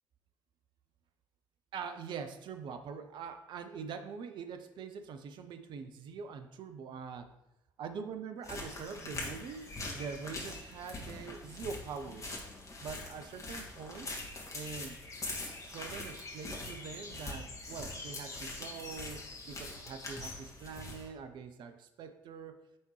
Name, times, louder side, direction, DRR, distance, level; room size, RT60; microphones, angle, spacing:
voice 1, 1.7-7.3 7.8-9.7 9.9-12.4 12.8-14.1 14.5-15.0 15.6-22.6, right 6 dB, 45° right, 8 dB, 0.5 m, -44 dB
sound 1, 8.4-21.1, left 2 dB, 30° left, 1.6 m, -43 dB
9.2 x 3.5 x 3.1 m, 0.90 s
figure-of-eight pair, 50°, 11 cm